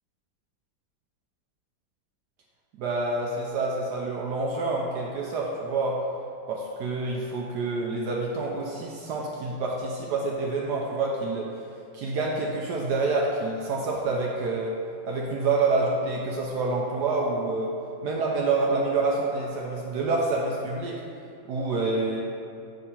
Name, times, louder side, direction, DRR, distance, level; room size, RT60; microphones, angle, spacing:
voice 1, 2.7-6.0 6.5-11.5 11.9-14.7 15.0-17.7 18.0-21.0 21.4-22.2, right 3 dB, 70° right, -2 dB, 1.1 m, -27 dB
6.8 x 3.6 x 4.3 m, 2.5 s
omnidirectional pair, 2.0 m